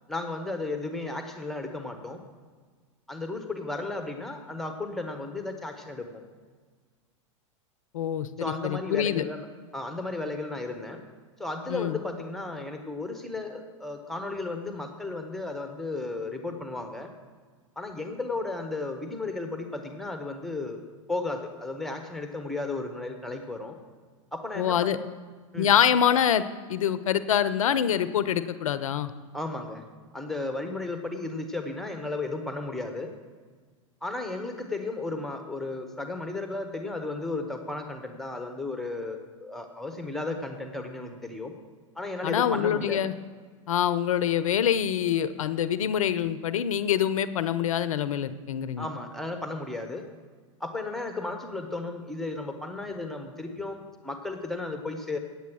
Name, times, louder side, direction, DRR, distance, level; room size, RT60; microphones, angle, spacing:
voice 1, 0.1-2.2 3.1-6.2 8.4-9.5 9.7-11.0 11.4-17.1 17.8-20.8 21.1-23.8 24.3-25.1 25.5-25.7 29.3-29.8 30.1-33.1 34.0-41.5 42.0-43.1 48.8-50.1 50.6-55.2, left 2 dB, ahead, 5 dB, 1.1 m, -34 dB
voice 2, 7.9-9.2 11.7-12.0 24.6-25.0 25.6-26.4 26.7-29.1 42.2-43.1 43.7-48.9, left 9 dB, 75° left, 14 dB, 0.5 m, -25 dB
9.2 x 8.1 x 6.1 m, 1.5 s
hypercardioid pair, 100°, 17 cm